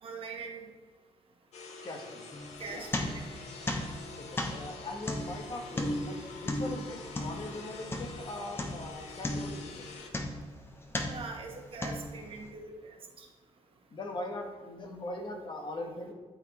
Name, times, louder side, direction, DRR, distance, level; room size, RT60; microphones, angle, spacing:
voice 1, 0.0-0.7 2.6-3.2 11.1-13.3, right 4 dB, 55° right, 2 dB, 1.1 m, -42 dB
sound 1, 1.5-10.1, left 4 dB, 80° left, 0.9 m, -46 dB
voice 2, 1.8-2.3 2.7-2.9 4.2-9.8 13.9-16.1, left 2 dB, 45° left, 3 dB, 1.1 m, -41 dB
sound 2, 2.3-3.4 3.7-8.3 8.6-8.9 9.2-10.5 10.9-11.3 11.8-12.4, left 1 dB, 20° left, 0.9 m, -35 dB
11.5 x 3.9 x 3.0 m, 1.4 s
cardioid pair, 105°, 11 cm